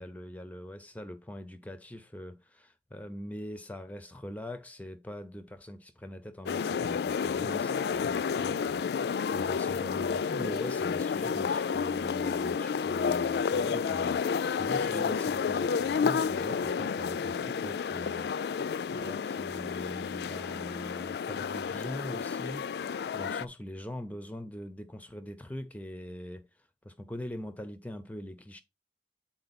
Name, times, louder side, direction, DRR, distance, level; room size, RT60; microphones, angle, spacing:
voice 1, 0.0-22.9 23.1-26.5 26.8-28.6, left 1 dB, 10° left, 0.5 m, -42 dB
sound 1, 6.5-23.5, left 6 dB, 65° left, 0.3 m, -31 dB
7.8 x 4.2 x 4.1 m
head